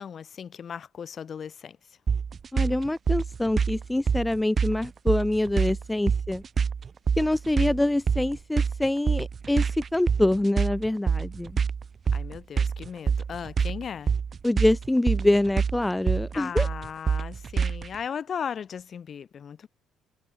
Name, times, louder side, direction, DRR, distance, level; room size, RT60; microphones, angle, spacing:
voice 1, 0.0-1.8 12.1-14.1 16.3-19.7, left 7 dB, 50° left, 1.5 m, -37 dB
sound 1, 2.1-18.0, right 6 dB, 40° right, 0.4 m, -26 dB
voice 2, 2.5-6.4 7.2-11.5 14.4-16.7, left 1 dB, 10° left, 1.1 m, -25 dB
hypercardioid pair, 50°, 0 cm